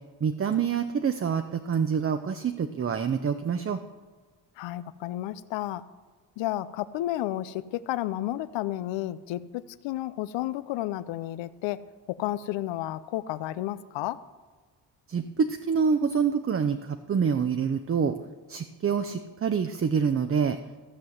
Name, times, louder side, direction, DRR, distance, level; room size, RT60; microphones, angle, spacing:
voice 1, 0.2-3.8 15.1-18.1 18.5-20.6, right 6 dB, 30° right, 8 dB, 0.7 m, -26 dB
voice 2, 4.6-5.8 6.4-11.8 12.2-14.2, left 14 dB, 85° left, 16 dB, 0.7 m, -32 dB
14.5 x 5.6 x 7.9 m, 1.4 s
cardioid pair, 90°, 43 cm